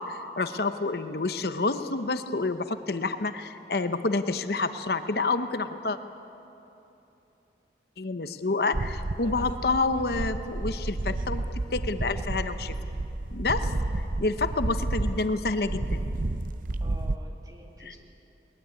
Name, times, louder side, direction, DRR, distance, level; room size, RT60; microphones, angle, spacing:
voice 1, 0.0-6.0 8.0-11.4 11.7-12.7 13.3-13.7 14.2-16.0 17.8-18.0, left 3 dB, 60° left, 10 dB, 0.8 m, -28 dB
sound 1, 8.7-17.2, right 2 dB, 45° right, 0.6 m, -31 dB
voice 2, 16.8-18.0, equal, 20° right, 1 dB, 2.3 m, -48 dB
20.0 x 19.5 x 9.7 m, 2.9 s
head